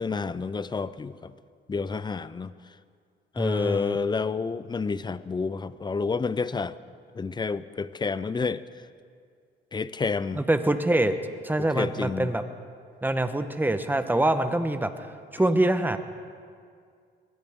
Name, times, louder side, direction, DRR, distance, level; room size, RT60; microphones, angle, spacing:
voice 1, 0.0-1.3 1.7-2.5 3.3-6.8 7.1-8.6 9.7-10.4 11.6-12.3, left 4 dB, 20° left, 16 dB, 0.5 m, -29 dB
voice 2, 3.4-4.0 10.3-11.1 11.4-12.4 13.0-16.0, right 1 dB, 10° right, 9 dB, 1.0 m, -25 dB
21.5 x 16.5 x 3.6 m, 2.2 s
cardioid pair, 90°, 20 cm